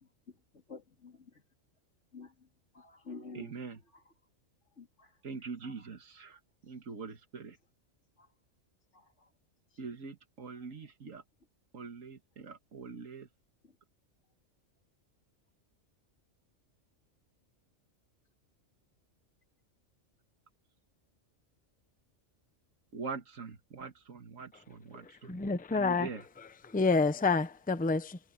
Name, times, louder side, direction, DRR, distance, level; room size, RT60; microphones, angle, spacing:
voice 1, 0.3-1.4 2.1-2.5 2.7-4.1 4.8-5.9 8.2-8.3 8.9-9.3 9.7-9.8 10.5-10.7 13.6-13.7, left 3 dB, 65° left, 3.1 m, -51 dB
voice 2, 3.3-3.8 5.2-6.4 6.7-7.6 9.8-11.2 11.7-13.3 22.9-25.4 25.7-26.2, right 5 dB, 85° right, 2.1 m, -43 dB
voice 3, 25.2-26.1 26.4-28.2, left 4 dB, 10° left, 0.6 m, -29 dB
omnidirectional pair, 1.3 m